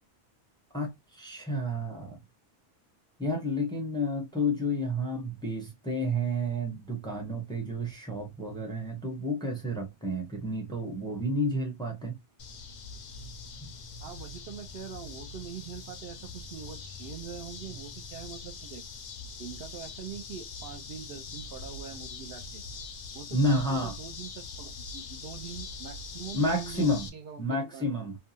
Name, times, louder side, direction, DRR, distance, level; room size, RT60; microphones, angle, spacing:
voice 1, 0.7-2.2 3.2-12.2 13.6-13.7 23.3-24.0 26.3-27.1 27.4-28.2, equal, 5° left, 0.7 m, -30 dB
sound 1, 12.4-27.1, left 4 dB, 60° left, 0.5 m, -43 dB
voice 2, 14.0-18.8 19.4-22.6 23.1-28.1, right 7 dB, 65° right, 0.7 m, -43 dB
2.7 x 2.2 x 2.7 m
omnidirectional pair, 1.1 m